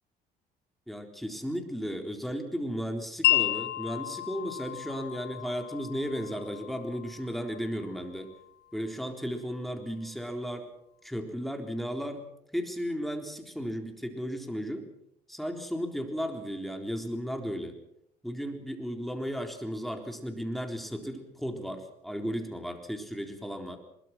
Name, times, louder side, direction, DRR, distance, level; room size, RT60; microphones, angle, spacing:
voice 1, 0.9-8.3 8.7-10.7 11.0-12.2 12.5-14.9 15.3-17.8 18.2-23.8, equal, ahead, 4 dB, 4.0 m, -35 dB
Wind chime, 3.2-9.3, left 14 dB, 75° left, 1.1 m, -33 dB
23.0 x 22.0 x 6.1 m, 0.75 s
cardioid pair, 110°, 17 cm